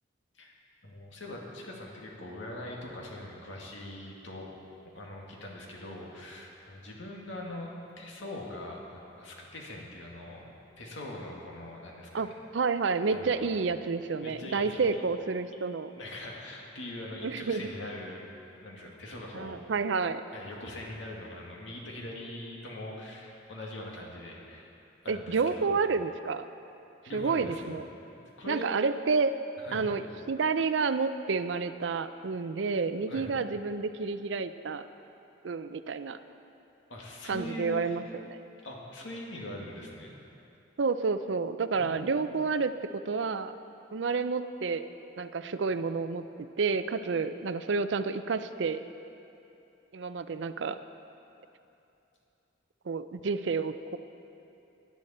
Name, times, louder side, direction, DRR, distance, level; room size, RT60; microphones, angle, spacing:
voice 1, 0.8-4.5 4.9-7.7 8.0-10.5 10.8-12.3 13.1-13.5 14.2-14.9 16.0-18.2 18.6-19.6 20.3-24.7 25.0-25.8 27.0-27.7 28.1-28.7 29.6-29.9 33.1-33.3 36.9-38.0 38.6-40.1 41.7-42.2, left 1 dB, 80° left, -2 dB, 2.1 m, -42 dB
voice 2, 12.5-15.9 17.2-17.7 19.3-20.2 25.1-26.4 27.1-27.8 28.5-29.4 29.7-34.8 35.4-36.2 37.3-38.0 38.3-38.4 40.8-43.6 43.9-44.8 45.2-48.8 49.9-50.8 52.9-54.0, right 4 dB, 70° right, 12 dB, 0.5 m, -30 dB
17.5 x 10.5 x 4.3 m, 2.8 s
head